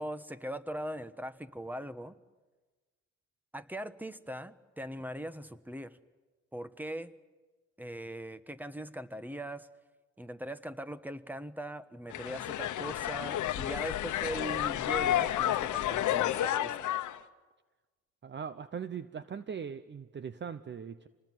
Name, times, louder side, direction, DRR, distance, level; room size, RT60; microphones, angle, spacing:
voice 1, 0.0-2.2 3.5-6.0 6.5-7.1 7.8-9.7 10.2-16.7, right 1 dB, 5° right, 13 dB, 1.2 m, -40 dB
sound 1, 12.1-17.2, left 12 dB, 75° left, 1.1 m, -31 dB
voice 2, 18.2-21.1, right 7 dB, 35° right, 13 dB, 0.9 m, -40 dB
27.0 x 19.5 x 9.3 m, 1.3 s
cardioid pair, 90°, 30 cm